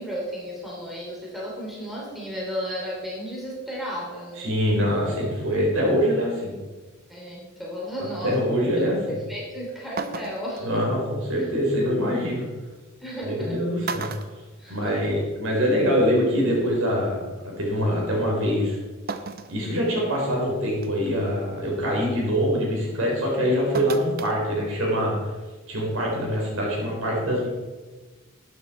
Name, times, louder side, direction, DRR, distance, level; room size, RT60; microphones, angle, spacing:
voice 1, 0.0-4.5 7.1-8.3 9.1-10.8 13.0-13.6 14.6-14.9, equal, ahead, -4 dB, 2.8 m, -33 dB
voice 2, 4.4-6.5 8.2-9.2 10.6-12.5 13.2-14.3 14.7-18.8 19.5-25.2 25.7-27.5, equal, 75° right, -2 dB, 4.1 m, -24 dB
sound 1, 9.4-9.5 10.0-10.6 12.2-12.3 13.3-13.5 13.8-15.2 15.6-15.7 16.9-17.0 19.1-19.6 20.1-20.2 20.8-21.1 23.7-24.4 24.7-24.8, right 4 dB, 45° right, 0.6 m, -34 dB
12.5 x 9.4 x 4.4 m, 1.3 s
head